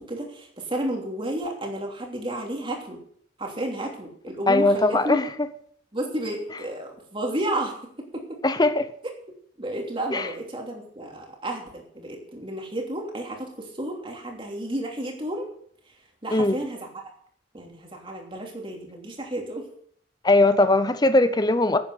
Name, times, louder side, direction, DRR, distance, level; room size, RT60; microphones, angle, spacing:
voice 1, 0.0-3.0 3.4-5.2 5.9-8.4 9.6-15.5 16.2-16.9 17.5-19.7, right 1 dB, 25° right, 3.0 m, -32 dB
voice 2, 4.5-5.5 8.4-8.9 10.1-10.3 16.3-16.6 20.2-21.8, left 2 dB, 20° left, 0.7 m, -20 dB
10.5 x 9.4 x 8.0 m
head